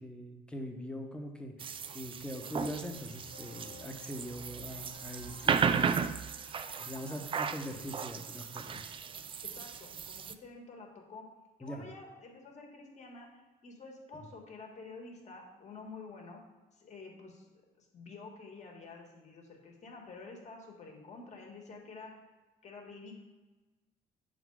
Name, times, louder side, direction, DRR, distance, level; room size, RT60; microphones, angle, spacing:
voice 1, 0.0-6.0 6.3-6.4 6.8-8.8 11.6-11.8, equal, 5° left, 3 dB, 0.9 m, -42 dB
sound 1, 1.6-10.3, right 6 dB, 30° right, 0.4 m, -35 dB
sound 2, 3.3-8.4, left 7 dB, 65° left, 0.8 m, -59 dB
voice 2, 9.4-11.3 11.6-16.4 16.7-22.2 22.6-23.2, left 3 dB, 45° left, 1 dB, 1.6 m, -49 dB
6.8 x 4.0 x 4.8 m, 1.2 s
cardioid pair, 110°, 17 cm